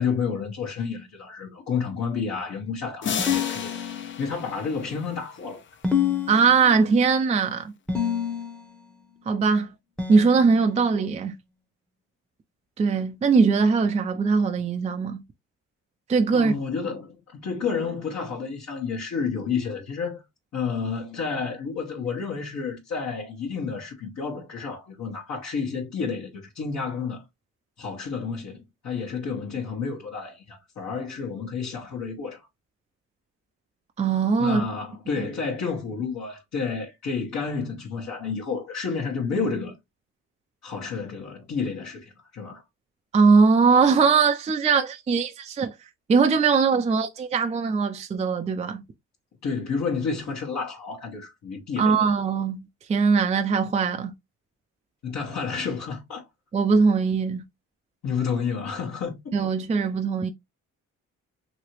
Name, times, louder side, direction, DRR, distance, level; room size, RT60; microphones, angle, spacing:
voice 1, 0.0-3.7 4.2-5.6 16.3-20.2 20.5-27.2 27.8-32.4 34.4-39.7 40.6-42.6 49.4-52.0 55.0-56.2 58.0-59.3, left 5 dB, 60° left, 1.2 m, -30 dB
sound 1, 3.0-5.5, left 7 dB, 40° left, 0.5 m, -33 dB
sound 2, 3.2-4.4 5.8-7.0 7.9-8.8 10.0-10.9, left 7 dB, 5° left, 0.8 m, -28 dB
voice 2, 6.3-7.7 9.3-9.7 10.1-11.3 12.8-15.2 16.1-16.5 34.0-34.6 43.1-45.7 46.1-48.8 51.8-54.1 56.5-57.4 59.3-60.3, right 5 dB, 20° right, 0.4 m, -21 dB
3.0 x 2.8 x 2.9 m
cardioid pair, 90°, 30 cm